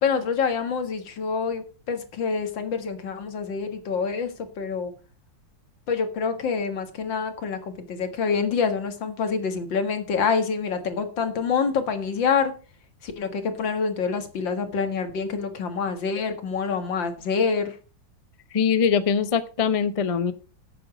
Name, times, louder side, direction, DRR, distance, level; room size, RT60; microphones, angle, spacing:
voice 1, 0.0-4.9 5.9-12.5 13.0-17.8, left 5 dB, 85° left, 8 dB, 2.4 m, -26 dB
voice 2, 18.5-20.3, left 6 dB, 40° left, 12 dB, 0.4 m, -22 dB
11.0 x 8.3 x 5.0 m, 0.35 s
omnidirectional pair, 2.0 m